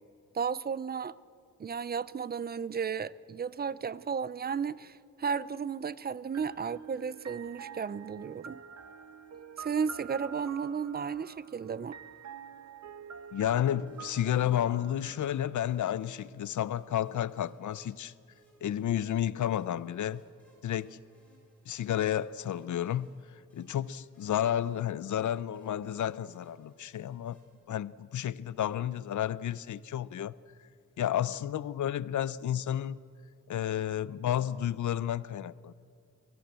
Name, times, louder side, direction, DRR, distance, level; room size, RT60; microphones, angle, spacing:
voice 1, 0.3-1.2 1.6-8.6 9.6-12.0, right 6 dB, 30° right, 0.5 m, -34 dB
sound 1, 6.3-16.1, right 6 dB, 65° right, 1.0 m, -48 dB
voice 2, 13.3-18.1 18.6-20.2 20.6-21.0 21.7-23.1 23.5-27.4 27.7-30.3 31.0-33.0 33.5-35.7, left 11 dB, 75° left, 0.6 m, -31 dB
sound 2, 13.9-27.6, equal, 5° left, 6.9 m, -67 dB
24.0 x 14.5 x 8.2 m
wide cardioid pair, 120°, 30 cm